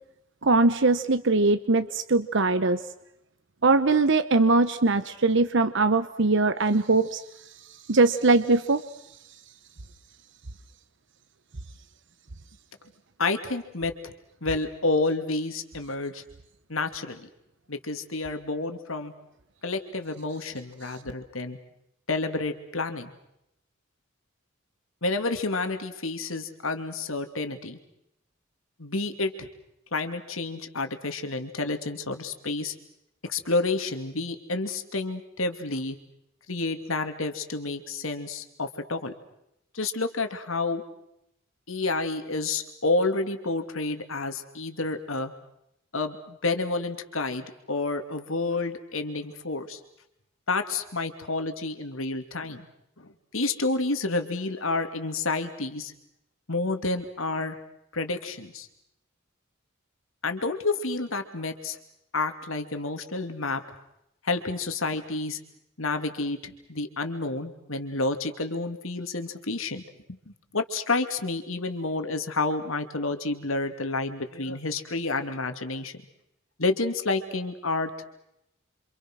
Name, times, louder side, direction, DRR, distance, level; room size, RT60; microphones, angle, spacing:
voice 1, 0.4-2.8 3.6-7.2 7.9-8.8, right 3 dB, 60° right, 11 dB, 1.0 m, -21 dB
voice 2, 13.2-13.9 14.4-16.2 16.7-17.3 17.7-19.1 19.6-21.6 22.1-23.1 25.0-27.8 28.8-29.5 29.9-32.7 33.2-36.0 36.5-39.1 39.7-40.8 41.7-45.3 45.9-49.8 50.5-52.7 53.3-55.9 56.5-57.6 57.9-58.7 60.2-61.8 62.1-63.6 64.2-65.4 65.8-69.8 70.1-70.2 70.5-76.0 76.6-78.0, left 3 dB, 80° left, 7 dB, 2.8 m, -29 dB
29.0 x 26.5 x 6.3 m, 0.81 s
head